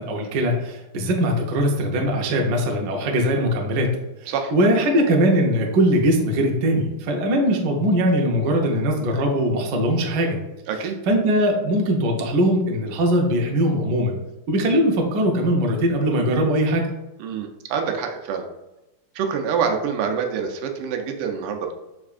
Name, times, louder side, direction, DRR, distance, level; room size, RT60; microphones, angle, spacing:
voice 1, 0.0-10.4 11.1-14.2 14.5-16.9, equal, 65° right, 1 dB, 1.1 m, -21 dB
voice 2, 10.7-11.0 17.2-18.5 19.1-21.7, right 6 dB, 90° right, 4 dB, 1.6 m, -26 dB
5.8 x 3.4 x 2.4 m, 0.96 s
omnidirectional pair, 2.4 m